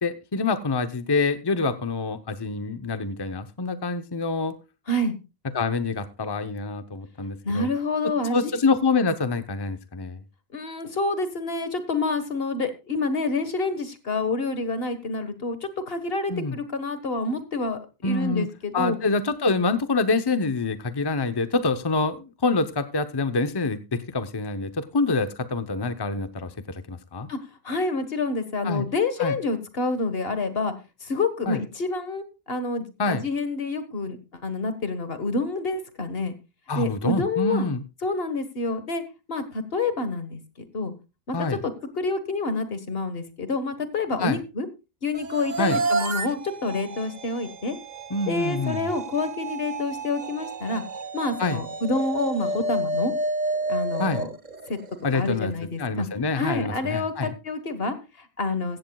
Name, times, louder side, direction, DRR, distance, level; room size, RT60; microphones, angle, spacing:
voice 1, 0.0-4.5 5.5-7.7 8.3-10.2 16.3-16.6 18.0-18.5 18.7-27.3 28.6-28.9 29.2-29.4 31.5-31.6 33.0-33.2 36.7-37.8 41.3-41.6 44.2-44.4 45.6-45.8 48.1-48.9 51.4-51.6 54.0-54.2 55.0-55.5 55.8-57.3, left 3 dB, 25° left, 10 dB, 0.8 m, -26 dB
voice 2, 7.4-8.5 10.5-19.0 27.3-27.4 27.6-30.7 31.0-36.3 36.8-37.7 38.0-39.0 39.3-40.4 40.7-40.9 41.3-44.7 45.0-47.8 48.3-50.8 51.1-53.1 53.7-54.3 54.7-54.8 55.1-56.1 56.4-58.8, left 3 dB, 70° left, 11 dB, 1.7 m, -28 dB
sound 1, 45.1-55.3, right 2 dB, 45° right, 0.9 m, -31 dB
15.5 x 14.5 x 2.3 m, 0.28 s
omnidirectional pair, 1.0 m